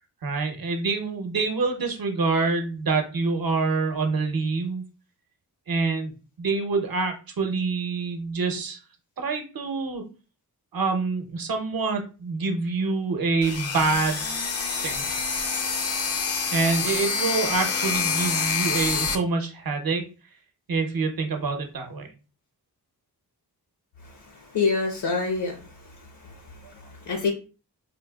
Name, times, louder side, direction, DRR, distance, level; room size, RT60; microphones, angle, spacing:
voice 1, 0.2-4.8 5.7-6.1 6.4-8.8 9.2-10.0 10.7-14.3 14.8-15.1 16.5-20.0 20.7-22.1, right 4 dB, 60° right, 5 dB, 0.8 m, -26 dB
sound 1, 13.4-19.1, left 5 dB, 40° left, 0.5 m, -27 dB
voice 2, 24.5-25.6 26.2-26.4 26.7-27.3, left 4 dB, 80° left, 2 dB, 0.9 m, -26 dB
4.3 x 2.4 x 2.3 m, 0.33 s
wide cardioid pair, 100°, 40 cm